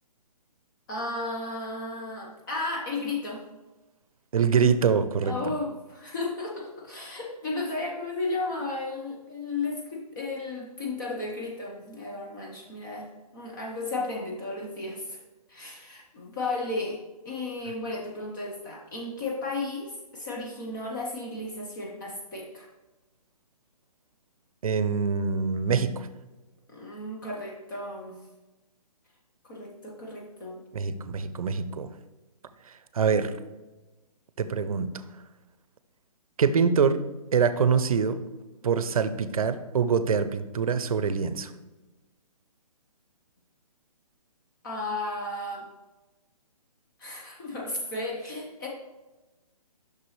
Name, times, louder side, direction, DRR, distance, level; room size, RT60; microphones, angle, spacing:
voice 1, 0.9-3.4 5.2-15.2 15.5-17.0 17.2-22.7 26.7-28.2 29.4-30.6 44.6-45.7 47.0-48.7, left 2 dB, 30° left, -1 dB, 0.9 m, -34 dB
voice 2, 4.3-5.5 24.6-26.1 30.7-31.9 32.9-33.4 34.4-34.9 36.4-37.0 37.3-38.2 38.6-41.5, right 6 dB, 65° right, 12 dB, 0.6 m, -24 dB
6.1 x 5.8 x 3.1 m, 1.1 s
hypercardioid pair, 165°, 20 cm